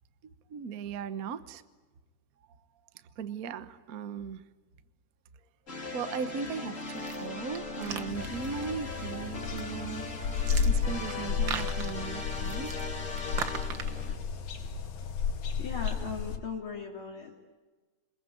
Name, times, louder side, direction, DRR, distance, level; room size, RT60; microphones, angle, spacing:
voice 1, 0.2-1.6 3.2-4.4 5.9-10.1 10.4-12.8, right 6 dB, 80° right, 13 dB, 0.8 m, -38 dB
sound 1, 5.7-14.2, left 3 dB, 25° left, 2.4 m, -39 dB
sound 2, 6.9-16.0, right 7 dB, 50° right, 1.8 m, -43 dB
sound 3, 8.1-16.4, left 6 dB, 80° left, 3.3 m, -33 dB
voice 2, 15.6-17.4, left 5 dB, 45° left, 1 dB, 3.5 m, -38 dB
27.5 x 21.0 x 9.2 m, 1.3 s
omnidirectional pair, 3.3 m